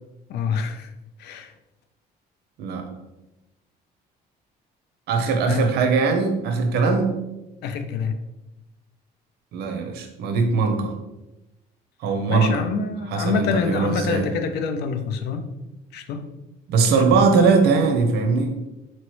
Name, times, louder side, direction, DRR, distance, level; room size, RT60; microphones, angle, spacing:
voice 1, 0.3-0.9 1.2-1.5 5.5-5.7 7.6-8.2 12.3-15.5 15.9-16.3 17.1-17.3, left 5 dB, 75° left, 8 dB, 0.5 m, -26 dB
voice 2, 5.1-7.1 9.5-10.9 12.0-12.6 13.1-14.2 16.7-18.5, right 4 dB, 75° right, 5 dB, 0.7 m, -20 dB
4.4 x 3.0 x 3.1 m, 0.98 s
cardioid pair, 110°, 17 cm